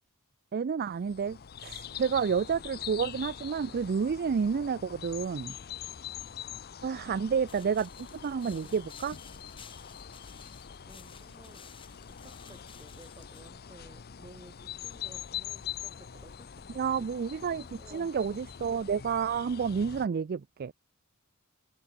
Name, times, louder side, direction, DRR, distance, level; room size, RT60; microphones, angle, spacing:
voice 1, 0.5-5.6 6.8-9.2 16.7-20.7, right 6 dB, 45° right, 0.4 m, -30 dB
sound 1, 0.9-20.1, left 9 dB, 45° left, 0.6 m, -44 dB
voice 2, 7.0-7.4 10.8-17.1 17.8-18.2, right 1 dB, 20° right, 1.7 m, -56 dB
sound 2, 7.5-13.5, left 6 dB, 25° left, 3.9 m, -55 dB
head